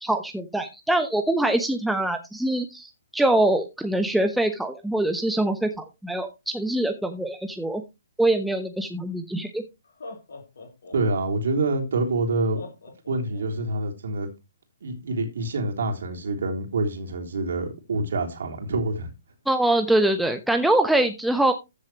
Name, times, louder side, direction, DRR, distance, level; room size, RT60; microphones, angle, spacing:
voice 1, 0.0-7.8 8.2-9.6 19.5-21.5, right 1 dB, ahead, 1.0 m, -24 dB
Laughter, 9.2-9.3 9.8-11.6 12.6-13.8, left 3 dB, 65° left, 4.4 m, -43 dB
voice 2, 10.9-12.6 13.1-14.3 14.8-19.1, right 2 dB, 65° right, 3.5 m, -26 dB
14.5 x 7.4 x 3.1 m
figure-of-eight pair, 130°, 0 cm